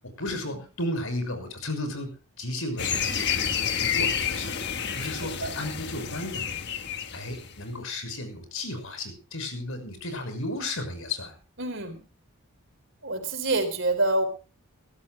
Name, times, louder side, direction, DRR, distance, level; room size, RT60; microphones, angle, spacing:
voice 1, 0.2-2.1 2.4-4.6 4.9-6.5 7.1-11.3, left 1 dB, 70° left, 7 dB, 6.4 m, -34 dB
sound 1, 2.8-7.7, left 7 dB, 50° left, 1.4 m, -29 dB
voice 2, 5.2-5.6 11.6-12.0 13.0-14.3, right 2 dB, 60° right, 7 dB, 4.2 m, -27 dB
23.5 x 17.0 x 2.2 m, 0.34 s
head